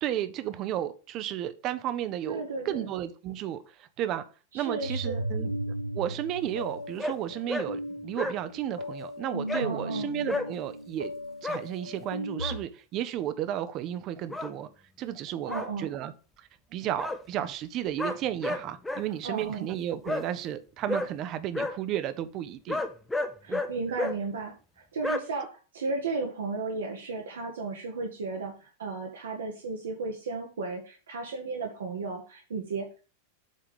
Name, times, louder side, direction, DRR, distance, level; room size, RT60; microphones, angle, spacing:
voice 1, 0.0-4.2 4.5-5.5 5.9-11.1 11.4-14.7 15.0-16.1 16.4-22.8 23.5-23.6, right 11 dB, 35° right, 0.7 m, -33 dB
voice 2, 2.3-2.8 4.5-5.2 9.5-10.1 15.4-15.9 19.2-19.7 23.4-33.0, right 3 dB, 65° right, 1.1 m, -34 dB
sound 1, 4.8-12.6, equal, 90° left, 0.9 m, -36 dB
sound 2, 7.0-7.1 7.5-7.7 7.9-8.4 9.5-9.6 10.3-10.5 11.4-11.6 12.1-12.6 14.3-14.5 15.5-15.7 17.0-17.2 18.0-19.0 20.1-20.2 20.9-21.1 21.5-21.7 22.7-23.7 24.0-24.2 25.0-25.2, left 2 dB, 5° left, 0.7 m, -30 dB
7.4 x 3.7 x 5.2 m
figure-of-eight pair, 90°, 0 cm